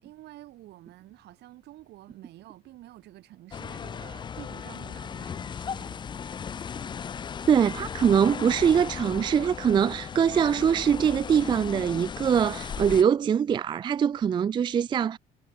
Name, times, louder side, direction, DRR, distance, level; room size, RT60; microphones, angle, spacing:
voice 1, 0.0-6.5, right 16 dB, 65° right, 3.4 m, -49 dB
sound 1, 3.5-13.0, left 7 dB, 25° left, 0.6 m, -36 dB
voice 2, 7.5-15.2, right 8 dB, 25° right, 0.4 m, -23 dB
cardioid pair, 135°, 18 cm